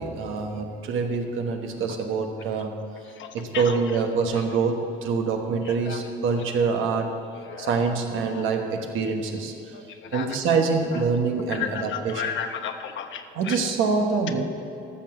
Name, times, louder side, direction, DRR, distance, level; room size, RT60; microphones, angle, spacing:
voice 1, 0.0-2.7 3.3-7.2 7.7-9.5 10.1-11.9 13.4-14.4, right 4 dB, 85° right, 3 dB, 1.2 m, -25 dB
voice 2, 3.0-4.0 4.3-4.4 5.6-6.8 7.2-8.6 9.7-10.6 10.9-11.0 11.5-13.6, left 8 dB, 75° left, 7 dB, 0.9 m, -36 dB
14.0 x 6.0 x 6.4 m, 2.7 s
cardioid pair, 90°, 20 cm